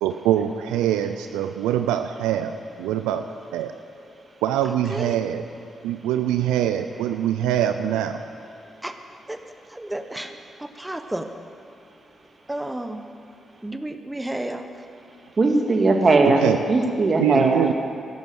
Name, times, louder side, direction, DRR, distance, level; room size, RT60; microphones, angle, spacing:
voice 1, 0.0-3.2 3.5-3.7 4.4-5.4 5.8-8.2 16.2-16.6 17.2-17.7, right 11 dB, 85° right, 8 dB, 0.4 m, -23 dB
voice 2, 4.9-5.2 8.8-9.0 9.3-9.4 9.7-10.3 10.6-11.3 12.5-13.0 13.6-14.7, right 1 dB, 15° right, 7 dB, 1.0 m, -31 dB
voice 3, 15.4-17.7, right 3 dB, 45° right, 3 dB, 2.1 m, -19 dB
12.5 x 11.0 x 7.9 m, 2.5 s
hypercardioid pair, 45°, 0 cm